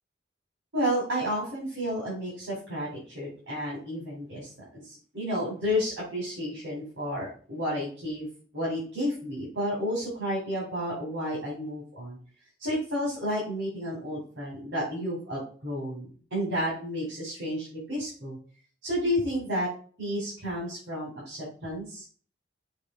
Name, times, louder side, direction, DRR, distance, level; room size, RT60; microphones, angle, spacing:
voice 1, 0.7-4.5 4.8-8.3 8.5-12.2 12.6-18.4 18.8-19.7 20.0-22.1, equal, 80° right, -6 dB, 3.7 m, -31 dB
6.6 x 3.6 x 5.0 m, 0.42 s
head